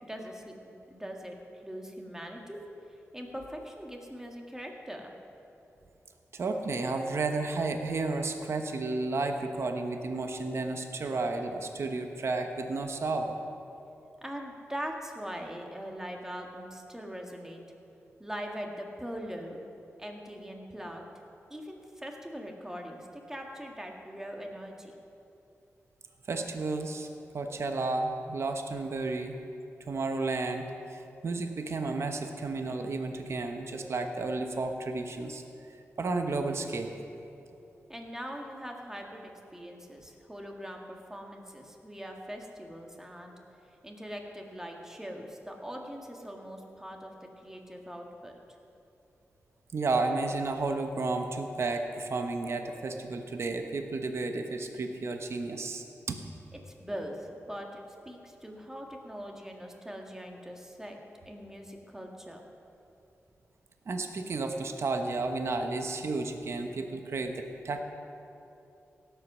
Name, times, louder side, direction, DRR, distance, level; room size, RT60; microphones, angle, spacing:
voice 1, 0.0-2.6 2.9-5.2 14.2-17.6 18.2-19.6 20.0-21.0 21.5-24.9 37.9-43.4 43.8-48.4 56.6-61.0 61.3-62.4, equal, 10° right, 1 dB, 1.8 m, -41 dB
voice 2, 6.3-13.4 26.3-27.1 27.3-29.4 29.9-35.4 36.0-37.0 49.7-56.2 63.9-67.8, right 3 dB, 60° right, 5 dB, 1.0 m, -32 dB
17.0 x 8.1 x 6.2 m, 2.8 s
wide cardioid pair, 80°, 5 cm